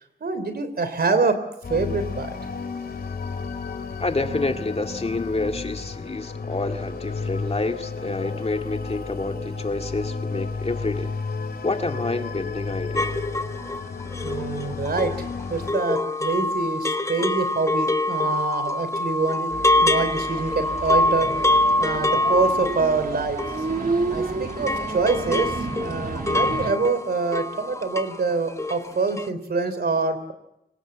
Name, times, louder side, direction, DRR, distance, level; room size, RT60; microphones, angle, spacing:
voice 1, 0.2-1.4 1.7-2.3 14.2-19.5 19.8-21.4 21.8-23.4 24.1-30.3, right 4 dB, 80° right, 11 dB, 3.3 m, -25 dB
sound 1, 1.6-15.7, left 4 dB, 80° left, 2.9 m, -32 dB
voice 2, 4.0-11.1 11.6-13.1, left 2 dB, 40° left, 5 dB, 2.1 m, -28 dB
sound 2, 12.9-24.2 24.5-28.2 28.5-28.9 29.2-29.3, left 2 dB, 20° left, 1.6 m, -25 dB
sound 3, 19.5-26.7, right 3 dB, 60° right, 1.7 m, -31 dB
26.0 x 17.5 x 8.5 m, 0.84 s
wide cardioid pair, 65°, 16 cm